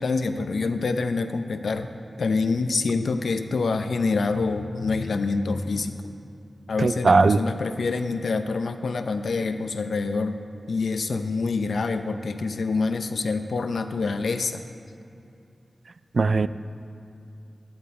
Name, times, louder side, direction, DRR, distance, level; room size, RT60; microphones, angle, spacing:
voice 1, 0.0-1.9 2.2-6.1 6.7-10.4 10.7-14.6, left 4 dB, 90° left, 8 dB, 0.6 m, -26 dB
voice 2, 6.8-7.4 16.1-16.5, right 4 dB, 70° right, 13 dB, 0.3 m, -18 dB
14.0 x 11.0 x 4.2 m, 2.7 s
wide cardioid pair, 80°, 0 cm